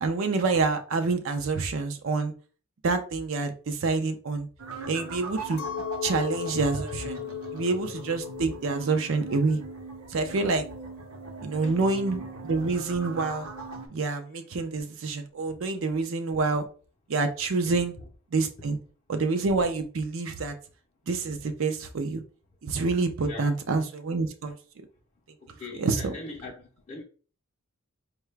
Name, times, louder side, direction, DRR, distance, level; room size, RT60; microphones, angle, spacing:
voice 1, 0.0-2.3 2.8-4.5 4.9-5.6 6.0-7.2 7.5-9.6 10.1-10.7 11.4-13.5 13.9-16.6 17.1-17.9 18.3-18.8 19.1-20.5 21.1-22.2 22.6-24.6 25.7-26.1, right 3 dB, 60° right, 0.5 m, -27 dB
sound 1, 4.6-13.9, right 3 dB, 80° right, 0.8 m, -40 dB
Chink clink, 5.6-11.0, left 11 dB, 80° left, 0.6 m, -38 dB
voice 2, 23.2-23.6 25.4-27.0, left 2 dB, 30° left, 0.6 m, -41 dB
4.6 x 2.2 x 3.2 m
head